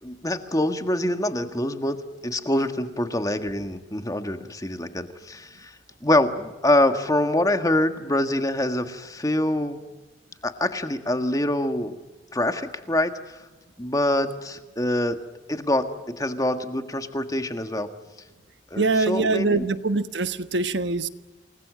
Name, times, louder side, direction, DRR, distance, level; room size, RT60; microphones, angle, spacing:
voice 1, 0.0-5.8 6.0-9.8 10.4-12.0 12.3-13.4 13.8-15.2 15.5-17.9 18.7-19.7, left 1 dB, 20° left, 8 dB, 1.6 m, -25 dB
voice 2, 18.8-21.1, right 3 dB, 70° right, 11 dB, 1.3 m, -23 dB
28.5 x 20.5 x 7.6 m, 1.2 s
head